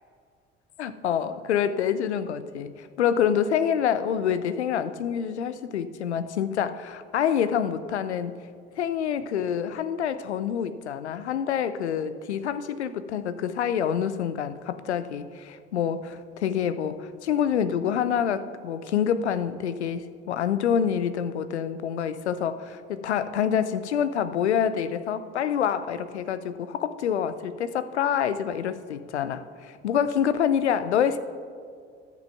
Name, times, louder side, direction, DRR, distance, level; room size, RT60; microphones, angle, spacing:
voice 1, 0.8-8.4 8.8-31.2, left 8 dB, 90° left, 13 dB, 0.5 m, -27 dB
13.0 x 6.1 x 5.8 m, 2.2 s
figure-of-eight pair, 55°, 33 cm